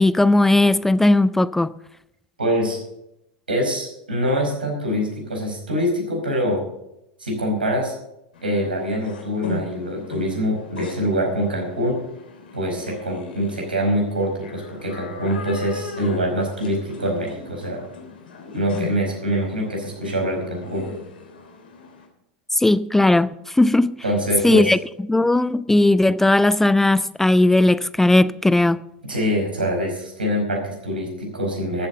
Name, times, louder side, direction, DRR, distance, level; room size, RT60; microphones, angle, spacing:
voice 1, 0.0-1.8 22.5-24.0 24.4-24.8 25.1-28.8, left 2 dB, 5° left, 0.4 m, -17 dB
voice 2, 2.4-2.8 3.5-6.6 7.2-7.9 8.4-12.0 12.5-17.8 18.5-20.9 24.0-24.7 29.1-31.9, equal, 85° right, 4.9 m, -24 dB
sound 1, 8.3-22.1, left 4 dB, 75° left, 3.3 m, -38 dB
14.0 x 8.5 x 6.8 m
figure-of-eight pair, 90°, 5 cm